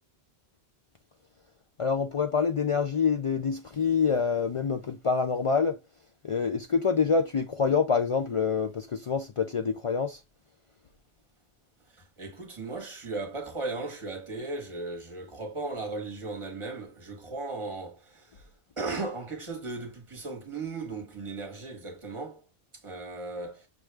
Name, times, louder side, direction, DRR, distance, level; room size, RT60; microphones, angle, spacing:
voice 1, 1.8-5.8 6.2-10.2, left 5 dB, 60° left, 0.3 m, -26 dB
voice 2, 11.9-18.5 18.8-22.4 22.7-23.7, right 3 dB, 30° right, 1.2 m, -36 dB
6.0 x 2.3 x 3.2 m
omnidirectional pair, 1.0 m